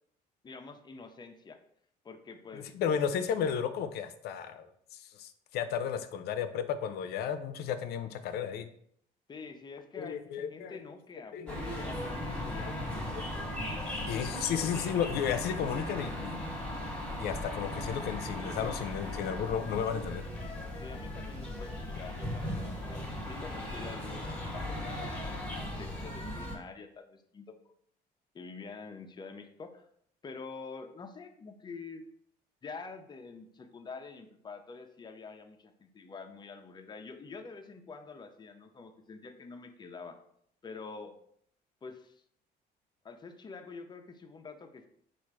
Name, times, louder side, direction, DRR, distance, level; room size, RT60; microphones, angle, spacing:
voice 1, 0.4-1.6 2.0-2.7 9.3-11.6 11.9-13.2 20.8-27.6 28.3-29.9 30.2-32.1 32.6-40.2 40.6-41.1 41.8-42.2 43.0-44.9, left 4 dB, 25° left, 6 dB, 0.5 m, -47 dB
voice 2, 2.5-8.7 10.0-10.8 11.3-11.9 13.1-13.2 14.1-16.4 17.2-20.2, left 8 dB, 70° left, 10 dB, 0.5 m, -33 dB
sound 1, 11.5-26.6, left 1 dB, 5° left, 1.1 m, -37 dB
4.2 x 2.5 x 4.6 m, 0.66 s
cardioid pair, 110°, 17 cm